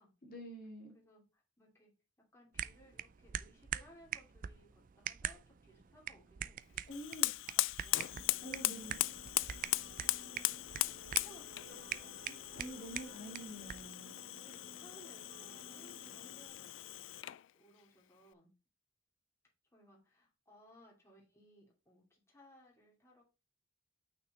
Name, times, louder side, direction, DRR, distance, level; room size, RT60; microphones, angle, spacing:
voice 1, 0.3-0.9 6.9-7.3 8.4-9.0 12.3-14.2, equal, 45° left, 2.2 m, -47 dB
voice 2, 0.9-1.9 2.3-6.8 7.4-9.0 10.2-10.6 11.1-12.2 12.6-13.2 14.3-17.1 17.5-18.5 19.7-23.2, equal, 15° left, 2.5 m, -62 dB
sound 1, 2.5-13.9, right 10 dB, 40° right, 0.3 m, -45 dB
Fire, 6.9-17.5, left 18 dB, 70° left, 0.3 m, -39 dB
sound 2, 8.1-16.5, right 2 dB, 60° right, 1.5 m, -58 dB
6.1 x 5.9 x 4.0 m
head